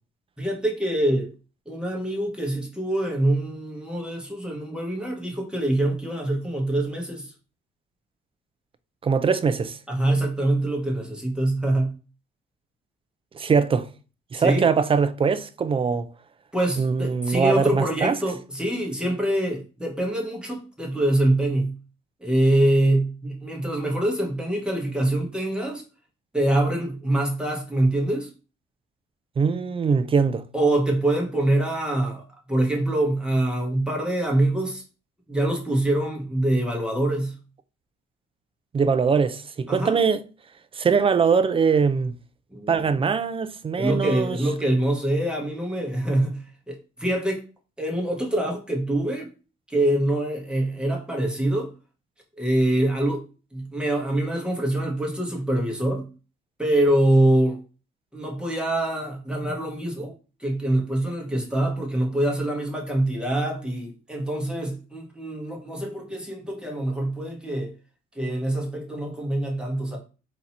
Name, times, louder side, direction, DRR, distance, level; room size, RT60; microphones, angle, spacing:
voice 1, 0.4-1.3 1.7-7.3 9.9-11.9 14.3-14.7 16.5-21.8 22.2-25.8 26.3-28.3 30.5-32.2 32.5-34.8 35.3-37.3 39.7-40.0 42.5-43.0 43.8-47.5 47.8-49.3 49.7-51.7 52.4-53.2 53.5-56.1 56.6-57.6 58.1-60.1 60.4-67.7 68.1-70.0, right 1 dB, 5° right, 1.5 m, -24 dB
voice 2, 9.0-9.8 13.3-13.9 14.3-16.1 16.8-18.2 29.4-30.4 38.7-40.2 40.7-42.1 42.7-44.4, right 5 dB, 30° right, 0.4 m, -22 dB
3.9 x 2.9 x 4.2 m
cardioid pair, 105°, 20 cm